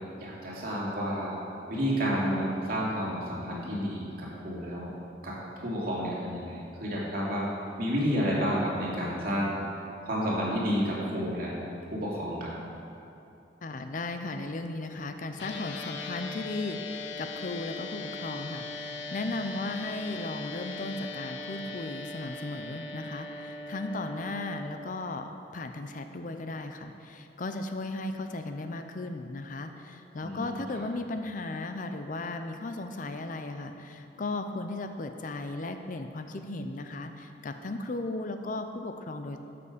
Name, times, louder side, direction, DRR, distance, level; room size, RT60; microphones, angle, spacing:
voice 1, 0.2-1.3 1.7-4.9 5.2-7.5 7.8-9.5 10.0-11.5 11.9-12.5 30.2-30.9, equal, 55° right, -5 dB, 2.6 m, -30 dB
voice 2, 13.6-39.4, left 2 dB, 45° left, 7 dB, 0.5 m, -36 dB
sound 1, 15.4-24.7, left 3 dB, 85° left, 1.0 m, -39 dB
12.5 x 7.0 x 5.0 m, 2.8 s
head